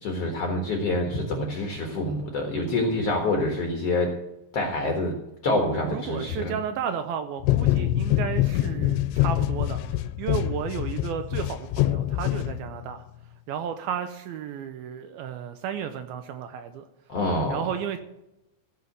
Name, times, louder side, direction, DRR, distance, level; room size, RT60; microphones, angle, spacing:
voice 1, 0.0-4.1 4.5-5.1 5.4-6.5 17.1-17.7, left 2 dB, 70° left, 2 dB, 1.4 m, -26 dB
voice 2, 5.8-13.0 13.5-16.9 17.5-18.0, right 8 dB, 80° right, 8 dB, 2.2 m, -33 dB
sound 1, 7.4-13.0, left 14 dB, 85° left, 2.6 m, -25 dB
15.0 x 5.8 x 7.9 m, 0.91 s
omnidirectional pair, 5.2 m